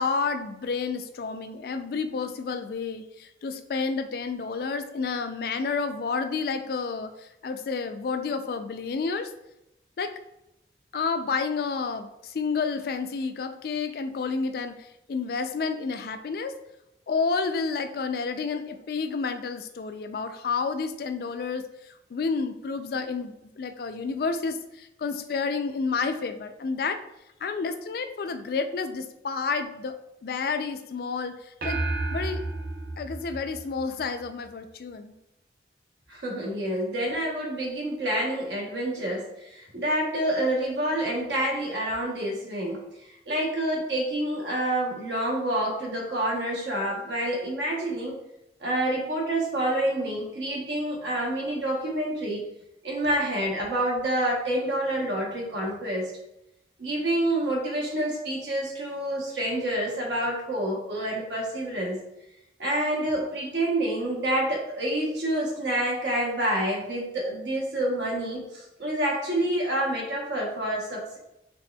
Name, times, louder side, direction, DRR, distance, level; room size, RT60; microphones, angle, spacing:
voice 1, 0.0-9.3 10.0-10.1 10.9-16.5 17.1-27.0 27.4-29.9 30.2-31.8 32.1-32.4 33.0-35.1, left 4 dB, 55° left, 9 dB, 0.3 m, -30 dB
sound 1, 31.6-34.3, right 2 dB, 55° right, 0.6 m, -31 dB
voice 2, 36.1-42.8 43.3-48.2 48.6-52.4 52.8-56.1 56.8-62.0 62.6-71.2, right 1 dB, 80° right, -2 dB, 1.0 m, -28 dB
4.1 x 3.4 x 2.2 m, 0.86 s
head